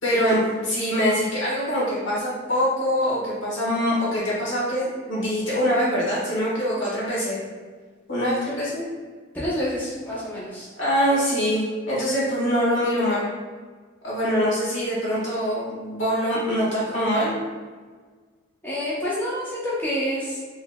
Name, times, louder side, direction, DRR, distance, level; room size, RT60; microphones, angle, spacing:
voice 1, 0.0-7.4 8.1-8.8 10.8-13.2 14.0-17.4, equal, 75° left, -7 dB, 1.5 m, -24 dB
voice 2, 9.3-10.7 18.6-20.4, equal, 10° left, -8 dB, 0.6 m, -28 dB
3.8 x 3.1 x 2.2 m, 1.5 s
head